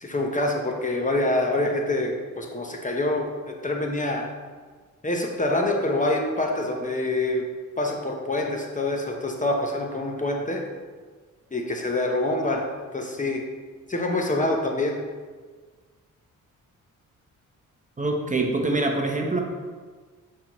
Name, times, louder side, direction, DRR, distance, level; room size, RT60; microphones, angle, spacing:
voice 1, 0.0-4.3 5.0-7.5 7.8-10.6 11.5-12.6 12.9-13.4 13.9-15.0, left 2 dB, 25° left, 1 dB, 0.8 m, -26 dB
voice 2, 18.0-19.4, right 2 dB, 25° right, 1 dB, 0.8 m, -24 dB
8.0 x 4.3 x 3.0 m, 1.5 s
cardioid pair, 80°, 33 cm